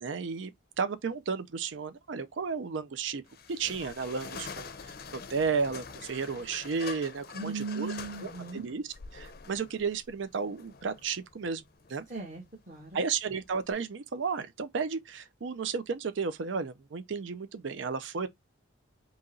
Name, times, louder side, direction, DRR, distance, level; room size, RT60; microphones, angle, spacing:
voice 1, 0.0-3.2 3.5-4.7 5.1-7.9 8.2-11.6 11.9-12.1 12.9-18.3, right 5 dB, 75° right, 0.5 m, -33 dB
sound 1, 3.3-13.7, left 5 dB, 50° left, 0.5 m, -46 dB
voice 2, 7.3-8.7 12.1-13.0, right 4 dB, 40° right, 1.3 m, -38 dB
4.0 x 2.9 x 3.7 m
head